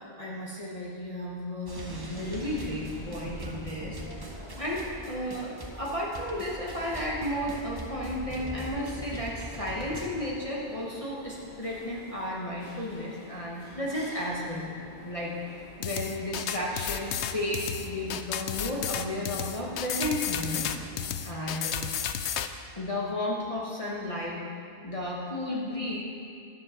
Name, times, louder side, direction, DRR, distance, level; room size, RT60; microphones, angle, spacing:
voice 1, 0.0-14.7 15.0-15.4 15.8-20.7 21.2-21.9 22.8-24.4 24.8-26.0, left 1 dB, 30° left, -5 dB, 1.3 m, -33 dB
sound 1, 1.7-10.1, right 1 dB, 20° right, 0.9 m, -41 dB
sound 2, 2.2-21.4, left 2 dB, 65° left, 1.6 m, -49 dB
sound 3, 15.8-22.5, left 9 dB, 80° left, 0.9 m, -32 dB
11.5 x 7.5 x 5.9 m, 2.3 s
omnidirectional pair, 1.1 m